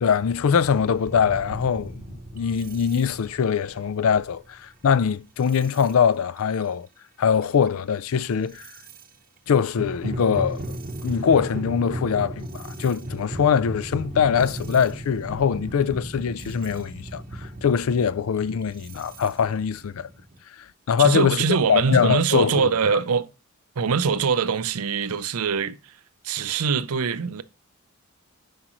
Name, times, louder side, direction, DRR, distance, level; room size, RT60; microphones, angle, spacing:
voice 1, 0.0-6.9 7.2-8.7 9.5-10.6 11.0-20.1 20.9-21.4 21.7-23.0, left 7 dB, 70° left, 0.4 m, -22 dB
sound 1, 0.6-4.9 5.4-5.9 6.4-6.7 7.2-9.1 9.6-20.4, right 1 dB, 40° right, 0.8 m, -36 dB
voice 2, 21.0-23.3 23.8-25.8 26.2-27.4, right 5 dB, 80° right, 0.6 m, -23 dB
9.8 x 4.9 x 3.0 m
head